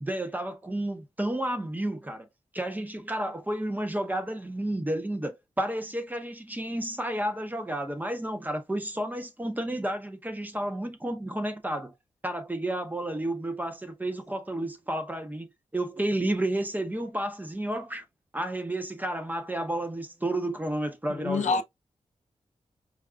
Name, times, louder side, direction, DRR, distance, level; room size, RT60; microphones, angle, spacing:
voice 1, 0.0-2.3 2.5-11.9 12.2-18.0 18.3-21.6, right 1 dB, 15° right, 0.7 m, -31 dB
voice 2, 21.1-21.6, left 4 dB, 80° left, 0.4 m, -27 dB
4.8 x 2.3 x 2.3 m
wide cardioid pair, 110°, 12 cm